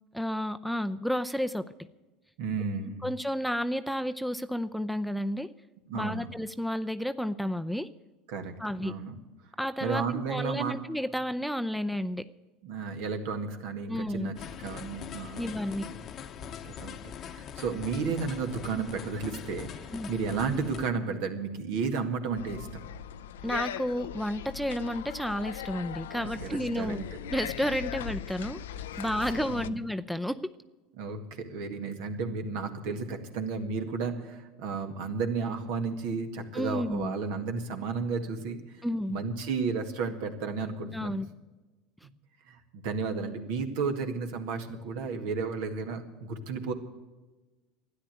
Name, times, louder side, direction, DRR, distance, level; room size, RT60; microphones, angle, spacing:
voice 1, 0.1-1.7 3.0-5.5 5.9-7.9 8.6-8.9 9.6-12.3 13.9-14.3 15.4-15.9 19.9-20.1 23.4-27.1 27.3-28.6 29.0-30.5 36.5-37.1 38.8-39.2 40.9-41.3, equal, ahead, 11 dB, 0.5 m, -31 dB
voice 2, 2.4-3.1 5.9-6.3 8.3-8.5 8.8-9.2 9.8-10.8 12.6-14.4 14.6-16.0 16.4-22.8 26.2-27.0 28.9-29.0 29.5-29.8 31.0-38.8 39.1-41.2 42.5-46.7, right 4 dB, 70° right, 6 dB, 1.9 m, -33 dB
sound 1, 14.4-20.9, left 8 dB, 45° left, 0.9 m, -42 dB
sound 2, 22.3-29.7, left 10 dB, 85° left, 0.5 m, -39 dB
13.0 x 9.9 x 9.1 m, 1.2 s
hypercardioid pair, 90°, 0 cm